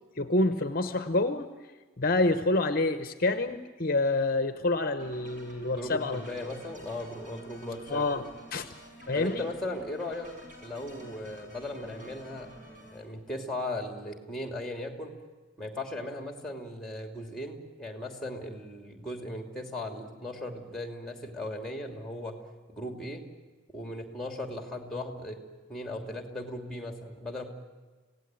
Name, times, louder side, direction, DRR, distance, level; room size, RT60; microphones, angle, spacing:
voice 1, 0.2-1.5 2.0-6.2 7.9-8.7 9.1-9.5, left 2 dB, 45° left, 9 dB, 0.9 m, -27 dB
sound 1, 5.0-13.0, equal, 40° right, 6.1 m, -50 dB
voice 2, 5.7-8.1 9.2-10.3 10.6-12.5 12.9-15.1 15.6-22.3 22.7-23.2 23.7-25.4 25.7-27.4, left 1 dB, ahead, 4 dB, 2.8 m, -37 dB
26.5 x 17.5 x 9.1 m, 1.4 s
head